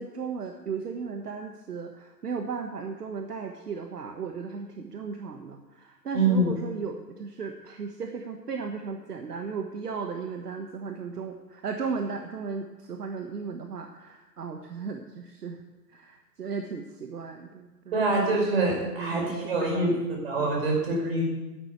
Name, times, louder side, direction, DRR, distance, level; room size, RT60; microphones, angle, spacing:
voice 1, 0.0-15.6 15.9-18.0 18.8-20.0 20.4-20.5, right 5 dB, 65° right, 4 dB, 1.4 m, -36 dB
voice 2, 6.1-6.5 17.9-19.9 20.2-21.2, right 2 dB, 35° right, -1 dB, 5.4 m, -25 dB
11.5 x 9.8 x 8.4 m, 1.1 s
hypercardioid pair, 165°, 49 cm